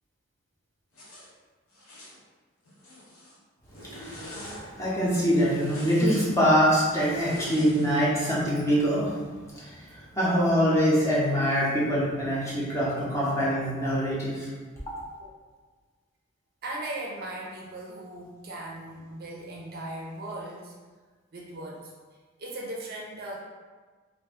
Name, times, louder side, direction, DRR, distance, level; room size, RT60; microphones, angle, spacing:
Zipper (clothing), 0.9-1.3 1.7-2.2 2.7-3.4 3.7-4.6 5.3-6.2 7.0-8.0, left 1 dB, 85° left, 0.7 m, -44 dB
voice 1, 3.9-9.2 9.5-14.5, equal, 15° left, -7 dB, 0.6 m, -24 dB
voice 2, 16.6-20.7 21.3-21.9 22.4-23.4, right 1 dB, 45° right, -3 dB, 0.4 m, -38 dB
2.5 x 2.2 x 3.4 m, 1.4 s
head